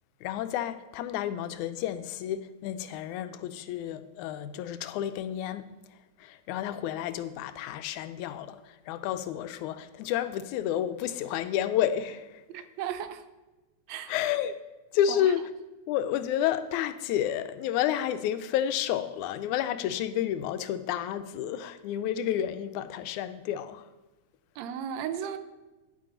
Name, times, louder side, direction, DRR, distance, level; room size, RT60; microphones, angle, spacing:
voice 1, 0.2-12.7 14.1-14.6 14.9-15.4 15.9-23.9, left 10 dB, 90° left, 2.0 m, -30 dB
voice 2, 12.5-13.2 13.9-14.1 24.6-25.4, right 9 dB, 75° right, 1.8 m, -35 dB
10.5 x 8.4 x 3.9 m
omnidirectional pair, 3.4 m